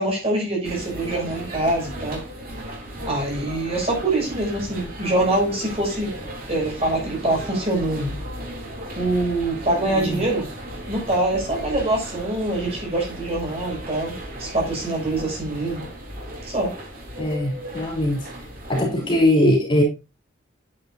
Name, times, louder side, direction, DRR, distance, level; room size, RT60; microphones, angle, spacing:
voice 1, 0.0-2.2 3.0-6.1 6.5-8.1 8.9-10.5 10.9-15.8 16.4-16.7, right 2 dB, 30° right, 6.4 m, -24 dB
sound 1, 0.6-19.2, equal, 45° right, 3.9 m, -36 dB
voice 2, 9.9-10.2 17.2-18.2 18.7-19.8, left 1 dB, 25° left, 3.4 m, -21 dB
10.0 x 9.7 x 2.6 m
head